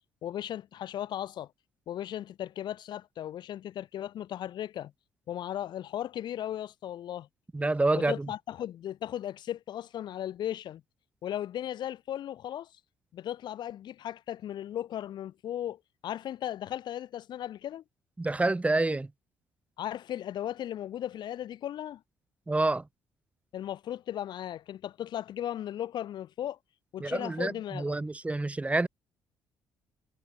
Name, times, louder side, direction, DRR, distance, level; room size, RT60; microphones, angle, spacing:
voice 1, 0.2-1.5 1.9-4.9 5.3-7.3 7.9-10.8 11.2-12.7 13.1-17.8 19.8-22.0 23.5-26.6 26.9-28.0, left 11 dB, 60° left, 3.9 m, -36 dB
voice 2, 7.5-8.3 18.2-19.1 22.5-22.9 27.0-28.9, right 2 dB, 15° right, 0.8 m, -28 dB
hypercardioid pair, 45°, 9 cm